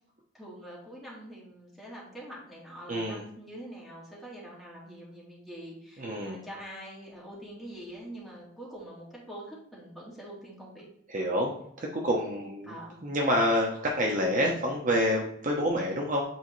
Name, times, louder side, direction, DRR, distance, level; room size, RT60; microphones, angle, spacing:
voice 1, 0.3-10.9 12.6-13.1, right 1 dB, ahead, -7 dB, 2.1 m, -45 dB
voice 2, 2.9-3.2 6.0-6.4 11.1-11.5 11.8-12.7 13.0-16.2, equal, 40° right, 0 dB, 0.8 m, -27 dB
8.1 x 4.2 x 3.1 m, 0.70 s
head